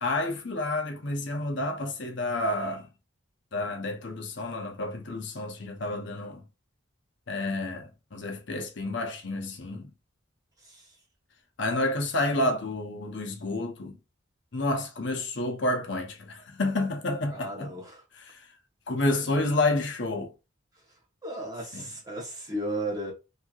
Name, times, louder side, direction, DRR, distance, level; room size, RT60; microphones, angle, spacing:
voice 1, 0.0-2.9 3.5-6.4 7.3-9.9 11.6-14.0 14.5-17.7 18.2-18.5 18.9-20.3 21.7-21.8, left 2 dB, 60° left, 0.7 m, -29 dB
voice 2, 10.6-11.0 17.3-18.0 19.2-19.3 21.2-23.1, right 1 dB, 20° right, 1.0 m, -35 dB
3.1 x 2.7 x 2.4 m
head